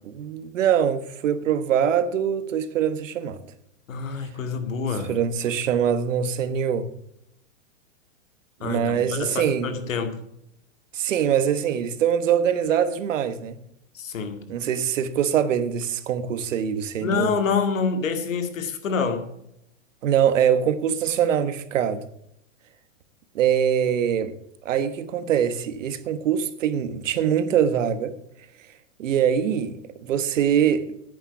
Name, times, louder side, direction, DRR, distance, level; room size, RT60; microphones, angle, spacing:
voice 1, 0.2-3.4 5.1-6.9 8.6-9.7 10.9-13.6 14.5-17.3 20.0-22.0 23.3-24.3 24.6-28.1 29.0-31.0, right 8 dB, 75° right, 1.3 m, -23 dB
voice 2, 3.9-5.1 8.6-10.2 13.9-14.4 17.0-19.2, left 5 dB, 85° left, 2.1 m, -27 dB
10.5 x 9.1 x 5.9 m
hypercardioid pair, 150°, 38 cm